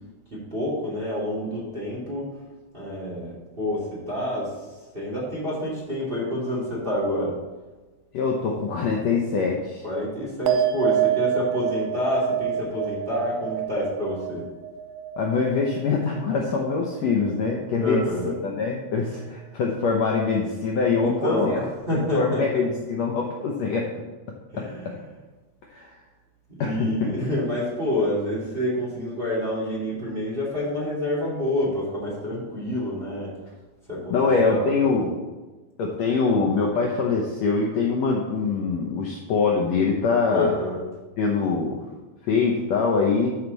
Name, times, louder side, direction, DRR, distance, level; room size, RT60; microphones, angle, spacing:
voice 1, 0.3-2.3 2.7-4.5 4.9-7.4 9.8-14.5 17.8-18.3 21.0-22.6 24.5-25.0 26.6-33.3 33.9-34.6 40.3-40.8, left 1 dB, 15° right, -5 dB, 2.1 m, -28 dB
voice 2, 8.1-9.8 15.2-18.0 18.4-21.6 21.9-23.9 24.6-24.9 25.7-25.9 26.6-27.0 34.1-35.2 35.8-40.5 41.2-41.8 42.2-43.3, left 4 dB, 85° left, -1 dB, 1.5 m, -24 dB
sound 1, 10.5-17.2 17.4-18.1, right 10 dB, 80° right, 2.3 m, -28 dB
13.0 x 4.7 x 4.0 m, 1.2 s
omnidirectional pair, 4.3 m